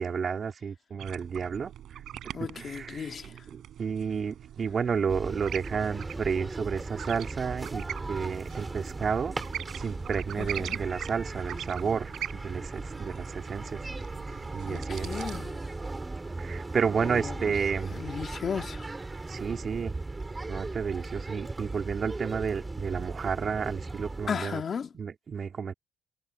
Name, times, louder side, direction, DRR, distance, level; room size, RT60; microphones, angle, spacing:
voice 1, 0.0-1.7 2.2-9.4 9.8-13.9 14.5-15.2 16.4-18.0 19.3-19.9 20.5-24.6 24.9-25.7, right 6 dB, 45° right, 3.5 m, -31 dB
sound 1, 1.0-15.5, right 11 dB, 75° right, 4.1 m, -43 dB
voice 2, 2.3-3.3 10.4-10.8 14.7-15.6 17.0-17.6 17.9-18.8 24.3-24.9, left 7 dB, 50° left, 2.4 m, -35 dB
sound 2, 5.1-24.3, right 2 dB, 20° right, 5.2 m, -37 dB
cardioid pair, 90°, 0 cm